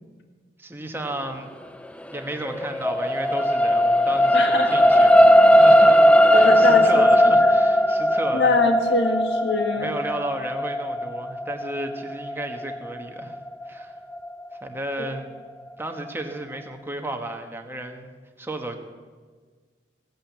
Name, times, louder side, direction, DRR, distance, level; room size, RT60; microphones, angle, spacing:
voice 1, 0.6-1.5 2.1-6.0 6.3-8.6 9.8-13.4 13.7-14.0 14.6-15.3 15.8-18.1 18.4-18.8, right 1 dB, 15° right, 4 dB, 1.2 m, -33 dB
sound 1, 2.0-14.5 15.1-15.2, equal, 5° left, 0.5 m, -18 dB
voice 2, 4.3-4.7 6.3-7.1 7.4-7.5 8.3-9.9 15.0-15.1, left 3 dB, 70° left, 5 dB, 1.7 m, -23 dB
16.0 x 8.8 x 7.4 m, 1.5 s
head